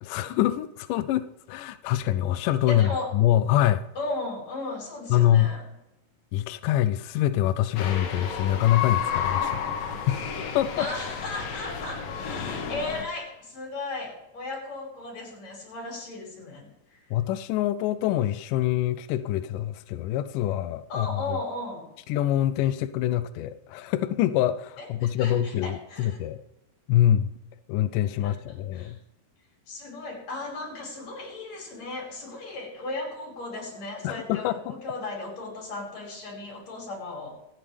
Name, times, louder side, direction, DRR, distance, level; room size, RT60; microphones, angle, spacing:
voice 1, 0.0-3.8 5.1-5.5 6.3-9.7 10.1-10.2 10.5-10.9 17.1-21.4 22.1-26.4 26.9-27.3 27.7-29.0 34.0-34.7, left 12 dB, 85° left, 13 dB, 1.9 m, -25 dB
voice 2, 2.7-3.1 4.0-5.6 10.8-17.0 20.9-21.9 24.8-26.2 28.2-28.3 28.7-28.9 29.7-37.3, left 2 dB, 45° left, -2 dB, 6.3 m, -36 dB
sound 1, 7.8-13.0, left 7 dB, 65° left, 3.0 m, -31 dB
26.0 x 9.0 x 3.4 m, 0.92 s
omnidirectional pair, 4.3 m